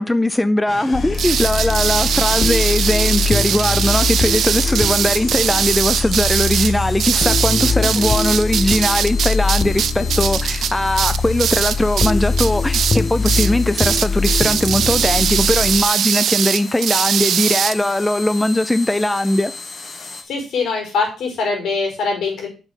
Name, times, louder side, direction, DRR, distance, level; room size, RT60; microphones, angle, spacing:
voice 1, 0.0-19.5, left 1 dB, 10° left, 0.5 m, -20 dB
sound 1, 0.7-20.2, left 4 dB, 45° left, 1.7 m, -35 dB
sound 2, 0.9-15.8, left 4 dB, 30° left, 0.8 m, -22 dB
sound 3, 1.1-12.1 12.4-13.0 13.2-13.5 13.8-17.7, right 9 dB, 75° right, 0.4 m, -21 dB
voice 2, 20.3-22.5, left 4 dB, 80° left, 4.8 m, -22 dB
7.1 x 6.1 x 5.5 m
cardioid pair, 125°, 0 cm